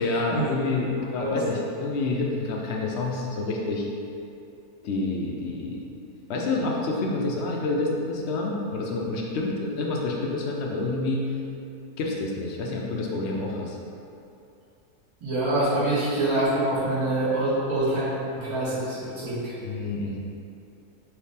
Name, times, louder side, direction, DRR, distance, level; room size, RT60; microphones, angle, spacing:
voice 1, 0.0-3.9 4.8-5.8 6.3-11.3 12.0-13.8 19.6-20.2, left 2 dB, 70° left, -1 dB, 0.6 m, -28 dB
voice 2, 15.2-19.6, right 1 dB, 80° right, -12 dB, 2.0 m, -25 dB
4.8 x 2.8 x 3.3 m, 2.6 s
omnidirectional pair, 1.6 m